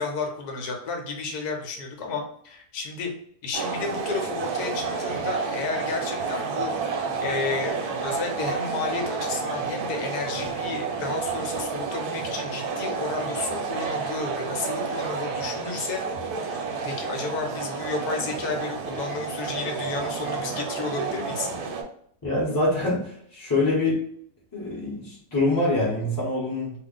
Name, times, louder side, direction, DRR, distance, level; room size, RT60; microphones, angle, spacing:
voice 1, 0.0-3.1 3.4-16.0 16.8-21.5, left 4 dB, 75° left, 2 dB, 1.2 m, -32 dB
sound 1, 3.5-21.8, right 5 dB, 75° right, 1.1 m, -30 dB
voice 2, 22.2-24.0 24.5-26.7, left 2 dB, 20° left, -6 dB, 0.7 m, -25 dB
2.5 x 2.4 x 3.7 m, 0.63 s
omnidirectional pair, 1.7 m